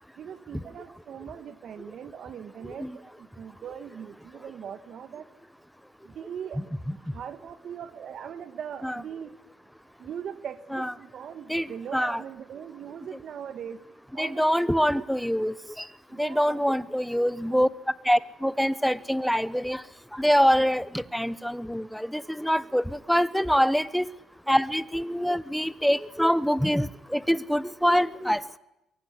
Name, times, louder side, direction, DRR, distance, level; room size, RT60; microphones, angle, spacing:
voice 1, 0.2-5.3 6.0-6.6 7.1-9.3 10.0-13.8 14.1-14.9 16.1-16.6, right 8 dB, 65° right, 12 dB, 1.8 m, -40 dB
voice 2, 11.5-12.2 14.2-15.8 16.2-17.7 18.0-19.8 20.1-24.1 24.5-28.4, equal, ahead, 16 dB, 1.0 m, -25 dB
22.5 x 22.5 x 10.0 m, 0.92 s
cardioid pair, 90°, 0 cm